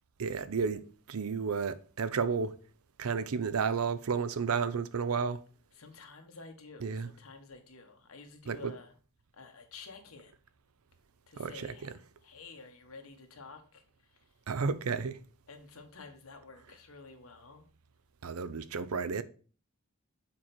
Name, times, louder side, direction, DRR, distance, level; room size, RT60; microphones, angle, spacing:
voice 1, 0.2-2.6 3.0-5.4 6.8-7.1 8.5-8.7 11.4-11.9 14.5-15.2 18.2-19.2, right 5 dB, 80° right, 0.6 m, -32 dB
voice 2, 5.8-8.9 9.3-10.3 11.3-11.9 12.2-14.2 15.5-17.6, left 4 dB, 75° left, 1.3 m, -51 dB
7.4 x 4.5 x 4.3 m
head